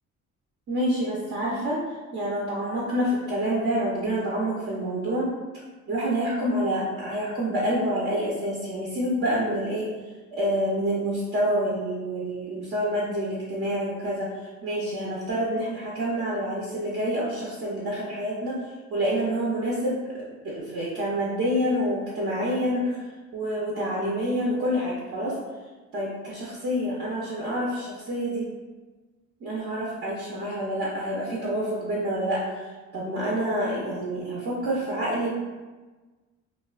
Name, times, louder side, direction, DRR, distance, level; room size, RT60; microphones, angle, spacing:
voice 1, 0.7-1.8 2.1-5.3 5.9-9.9 10.3-14.3 14.6-18.6 18.9-20.0 20.4-25.4 25.9-28.5 29.4-32.4 32.9-35.3, equal, 50° right, -5 dB, 0.6 m, -27 dB
2.5 x 2.1 x 2.3 m, 1.3 s
cardioid pair, 90°, 30 cm